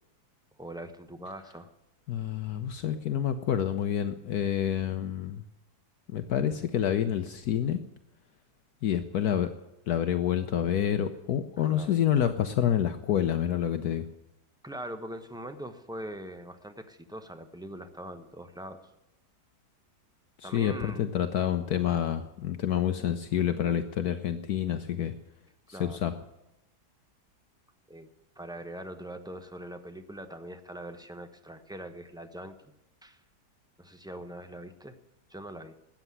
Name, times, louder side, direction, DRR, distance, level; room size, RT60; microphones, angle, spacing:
voice 1, 0.6-1.7 11.6-11.9 14.6-18.8 20.4-21.0 25.7-26.0 27.9-28.1 28.4-32.7 33.0-33.2 33.8-35.0 35.3-35.8, right 1 dB, 5° right, 7 dB, 0.5 m, -42 dB
voice 2, 2.1-5.4 6.1-7.8 8.8-9.5 9.9-14.0 20.4-25.1 25.7-26.1, left 10 dB, 65° left, 9 dB, 1.2 m, -28 dB
13.5 x 9.1 x 9.6 m, 0.91 s
omnidirectional pair, 1.9 m